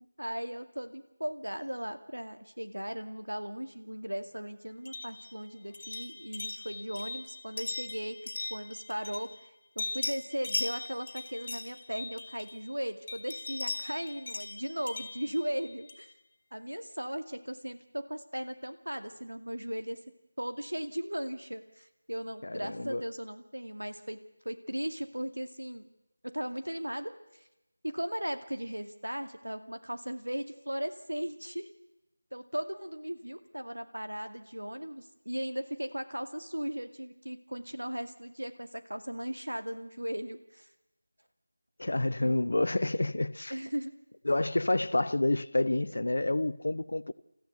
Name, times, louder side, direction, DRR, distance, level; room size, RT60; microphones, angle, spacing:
voice 1, 0.2-8.2 8.5-9.3 9.8-16.1 16.5-20.0 20.4-25.9 26.2-27.4 27.8-31.7 32.3-40.7 43.5-43.9, equal, 80° right, 2.2 m, -37 dB
sound 1, 4.8-9.5 9.8-12.7 13.1-16.1, left 2 dB, 35° left, 2.3 m, -39 dB
voice 2, 22.4-23.0 41.8-43.5 44.3-47.1, left 2 dB, 55° left, 0.8 m, -29 dB
29.5 x 14.5 x 8.1 m
figure-of-eight pair, 165°, 0 cm